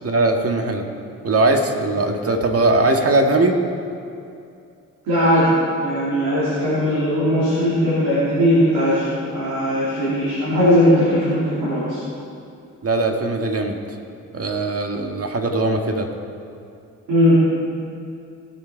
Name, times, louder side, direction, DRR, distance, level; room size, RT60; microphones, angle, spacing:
voice 1, 0.0-0.8 1.2-3.6 12.8-13.8 14.3-16.1, right 2 dB, 40° right, 4 dB, 1.7 m, -20 dB
voice 2, 5.0-5.5 5.8-12.0 17.1-17.4, equal, 80° right, -9 dB, 3.1 m, -18 dB
19.0 x 6.5 x 4.6 m, 2.5 s
supercardioid pair, 55°, 35 cm